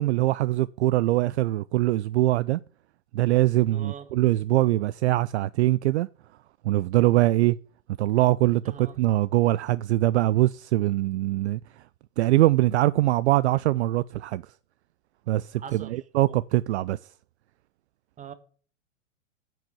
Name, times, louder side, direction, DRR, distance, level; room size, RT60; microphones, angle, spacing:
voice 1, 0.0-2.6 3.1-6.1 6.6-7.6 8.0-11.6 12.2-14.4 15.3-17.0, right 16 dB, 60° right, 0.5 m, -23 dB
voice 2, 3.7-4.1 8.7-9.0 15.6-16.0 16.3-16.4 18.2-18.3, right 7 dB, 20° right, 1.4 m, -42 dB
10.0 x 6.2 x 7.4 m
hypercardioid pair, 110°, 38 cm